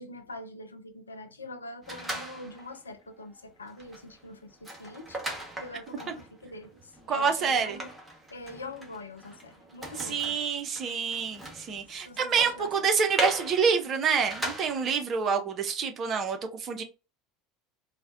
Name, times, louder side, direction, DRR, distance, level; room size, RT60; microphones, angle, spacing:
voice 1, 0.0-7.9 8.3-10.4 12.0-12.7, left 2 dB, 80° left, 0.4 m, -44 dB
sound 1, 1.8-2.8 3.2-3.4 3.7-15.0, right 1 dB, 15° right, 1.1 m, -39 dB
voice 2, 7.1-7.8 10.0-16.8, right 6 dB, 35° right, 0.6 m, -27 dB
3.9 x 2.1 x 2.5 m
figure-of-eight pair, 70°, 0 cm